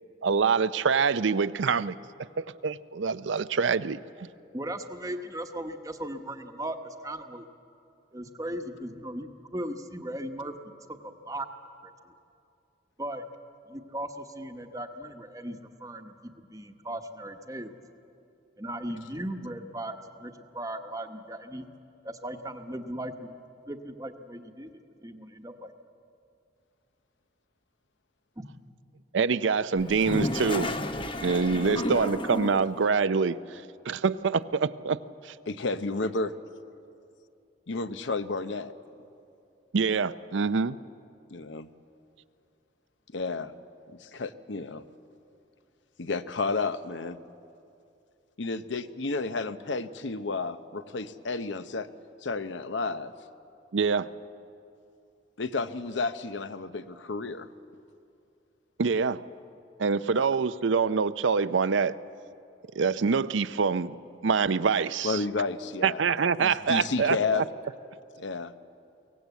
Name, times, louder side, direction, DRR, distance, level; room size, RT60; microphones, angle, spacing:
voice 1, 0.2-1.9 2.4-4.0 29.1-30.7 31.0-35.0 35.2-35.3 39.7-40.8 53.7-54.1 58.8-59.2 59.8-62.0 62.8-63.9 64.2-65.2 65.8-67.4, right 5 dB, 80° right, 14 dB, 0.5 m, -25 dB
voice 2, 4.5-7.4 8.1-11.5 11.8-11.9 13.0-13.2 13.7-17.8 18.6-21.7 22.0-23.4 23.7-25.7 28.4-28.5, right 1 dB, 20° right, 6 dB, 1.0 m, -37 dB
Toilet flush, 29.8-32.8, left 1 dB, 25° left, 0.9 m, -32 dB
voice 3, 31.6-32.0 35.5-36.3 37.7-38.7 41.3-41.7 43.1-43.5 44.0-44.8 46.0-47.2 48.4-51.9 52.2-53.1 55.4-57.5 60.1-60.3 65.0-66.0 66.4-67.4 68.2-68.5, left 3 dB, 75° left, 12 dB, 0.8 m, -31 dB
23.0 x 18.0 x 8.2 m, 2.6 s
head